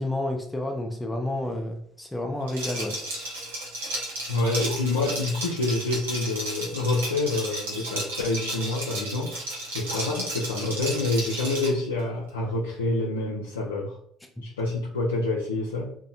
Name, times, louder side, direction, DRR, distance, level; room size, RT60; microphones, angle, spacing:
voice 1, 0.0-3.0, left 1 dB, 15° left, 3 dB, 0.5 m, -30 dB
Liquid, 2.5-11.8, right 1 dB, 85° right, 0.7 m, -33 dB
voice 2, 4.3-9.4 9.7-14.0 14.4-16.0, left 2 dB, 90° left, -3 dB, 0.3 m, -27 dB
2.6 x 2.1 x 2.5 m, 0.62 s
hypercardioid pair, 60°, 0 cm